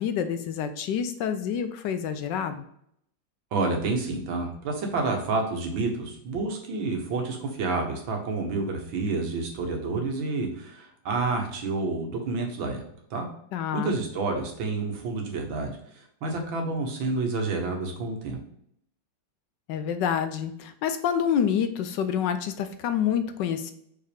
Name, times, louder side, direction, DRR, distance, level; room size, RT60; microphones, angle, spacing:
voice 1, 0.0-2.6 13.5-14.0 19.7-23.7, left 8 dB, 70° left, 9 dB, 1.2 m, -27 dB
voice 2, 3.5-12.8 13.1-13.3 13.7-15.7 16.2-18.4, right 3 dB, 85° right, 2 dB, 2.1 m, -29 dB
5.5 x 5.2 x 3.5 m, 0.70 s
omnidirectional pair, 2.1 m